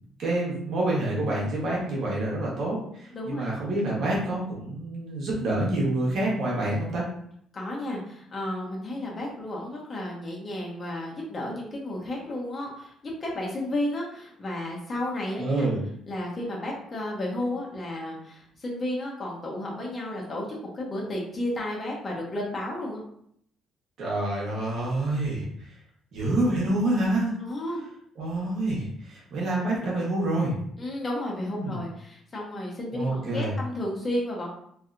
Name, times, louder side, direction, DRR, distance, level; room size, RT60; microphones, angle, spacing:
voice 1, 0.2-7.1 15.4-15.8 24.0-25.5 26.1-27.3 28.2-30.5 31.5-31.8 32.9-33.5, right 1 dB, 65° right, -4 dB, 1.2 m, -27 dB
voice 2, 3.1-3.5 7.5-15.7 16.1-23.0 27.4-27.8 30.8-34.5, left 1 dB, 35° left, -3 dB, 1.1 m, -32 dB
3.0 x 2.8 x 2.5 m, 0.68 s
cardioid pair, 90°, 0 cm